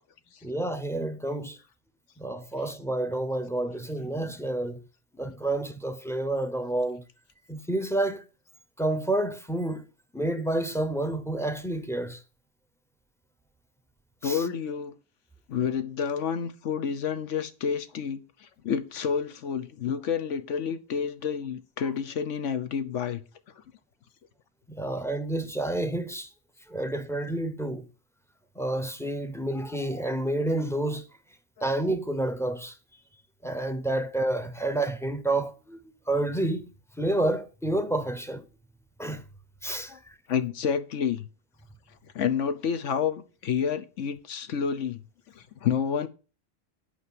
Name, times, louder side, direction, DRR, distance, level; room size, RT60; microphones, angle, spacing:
voice 1, 0.4-1.6 2.2-4.8 5.2-7.0 7.5-8.2 8.8-9.8 10.1-12.2 14.2-14.4 24.7-26.3 26.7-27.9 28.6-31.1 31.6-32.7 33.4-35.8 36.1-36.7 37.0-38.4 39.0-39.2 39.6-39.9, right 1 dB, 5° left, 0.5 m, -29 dB
voice 2, 14.2-14.9 15.5-23.2 39.9-40.0 40.3-41.3 42.1-45.0 45.3-46.1, left 7 dB, 85° left, 1.2 m, -29 dB
8.5 x 4.9 x 7.6 m
omnidirectional pair, 1.2 m